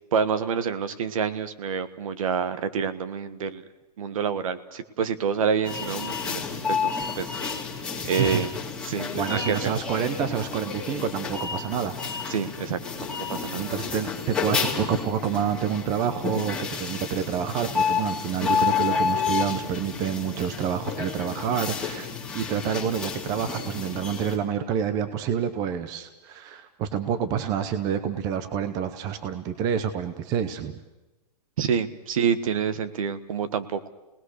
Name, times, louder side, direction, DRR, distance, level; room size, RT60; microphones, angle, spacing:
voice 1, 0.1-3.6 4.0-6.4 6.7-6.9 7.2-7.3 8.0-8.5 8.8-9.6 12.3-12.8 13.3-13.6 31.6-33.9, right 7 dB, 55° right, 12 dB, 1.6 m, -27 dB
sound 1, 5.6-24.4, left 6 dB, 5° left, 2.3 m, -30 dB
voice 2, 8.2-8.5 9.1-12.0 13.5-22.1 22.3-30.8, right 8 dB, 20° right, 10 dB, 0.8 m, -28 dB
28.5 x 19.5 x 6.6 m, 1.1 s
hypercardioid pair, 175°, 20 cm